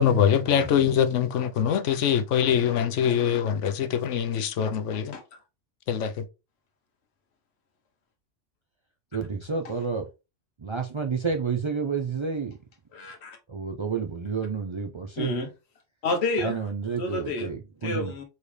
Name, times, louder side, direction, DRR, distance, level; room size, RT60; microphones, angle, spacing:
voice 1, 0.0-5.1 5.9-6.2, left 8 dB, 85° left, 1.0 m, -23 dB
voice 2, 0.5-0.9 9.1-10.0 10.6-12.6 13.5-15.3 16.4-18.1, right 5 dB, 50° right, 0.3 m, -30 dB
voice 3, 12.9-13.4 15.2-15.5 16.0-16.5 17.0-17.5 17.8-18.2, left 2 dB, 65° left, 1.3 m, -29 dB
4.3 x 3.3 x 3.2 m
omnidirectional pair, 1.2 m